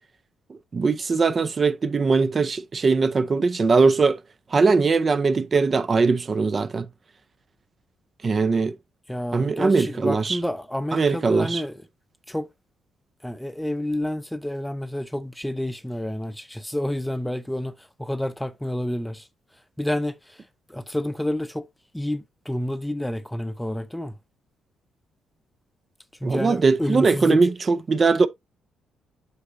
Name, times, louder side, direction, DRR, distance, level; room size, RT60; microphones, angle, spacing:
voice 1, 0.5-4.2 4.5-6.9 8.2-8.8 9.3-10.4 10.9-11.6 26.2-28.3, right 4 dB, 35° right, 0.6 m, -21 dB
voice 2, 9.1-11.8 12.3-12.5 13.2-17.7 18.0-19.3 19.8-20.1 20.7-21.6 21.9-24.1 26.2-27.4, left 1 dB, 5° left, 0.7 m, -29 dB
8.2 x 6.2 x 2.6 m
cardioid pair, 90°, 0 cm